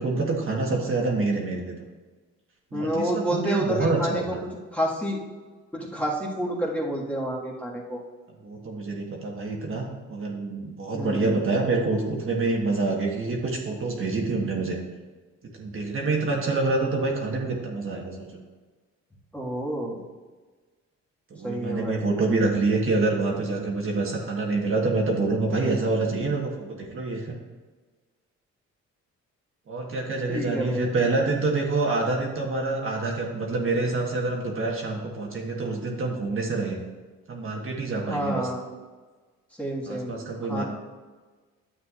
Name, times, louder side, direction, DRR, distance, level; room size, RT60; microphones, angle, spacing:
voice 1, 0.0-1.7 2.7-4.4 8.4-14.8 15.5-18.3 21.3-27.3 29.7-36.8 37.3-38.5 39.9-40.6, right 3 dB, 45° right, -1 dB, 1.4 m, -26 dB
voice 2, 2.7-4.3 4.7-5.2 5.7-8.0 10.9-11.5 19.3-20.0 21.4-22.4 30.3-31.3 38.1-38.6 39.6-40.1 40.4-40.6, equal, 5° left, -5 dB, 1.8 m, -29 dB
9.8 x 7.4 x 2.5 m, 1.4 s
cardioid pair, 90°, 30 cm